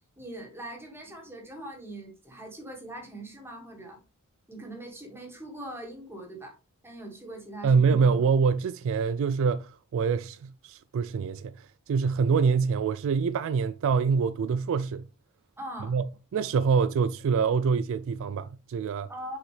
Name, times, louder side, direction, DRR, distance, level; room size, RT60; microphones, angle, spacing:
voice 1, 0.2-4.0 4.5-6.6 6.8-8.1 15.6-16.0 19.1-19.4, right 1 dB, 10° right, 1.9 m, -41 dB
voice 2, 7.6-15.0 15.9-16.0 16.3-19.1, right 5 dB, 60° right, 0.3 m, -25 dB
6.2 x 5.0 x 3.2 m
head